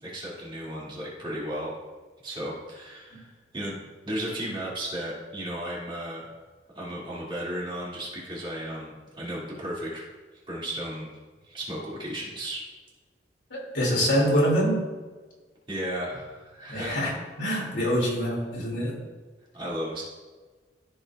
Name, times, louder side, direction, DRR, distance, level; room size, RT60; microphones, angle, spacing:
voice 1, 0.0-1.7 2.2-3.3 3.5-3.8 4.0-6.3 6.7-10.1 10.5-11.1 11.4-12.6 15.7-17.2 19.5-20.0, equal, 25° right, -6 dB, 2.3 m, -34 dB
voice 2, 13.5-14.8 16.7-17.1 17.4-19.0, equal, 80° left, -4 dB, 2.5 m, -25 dB
14.0 x 5.3 x 2.4 m, 1.3 s
head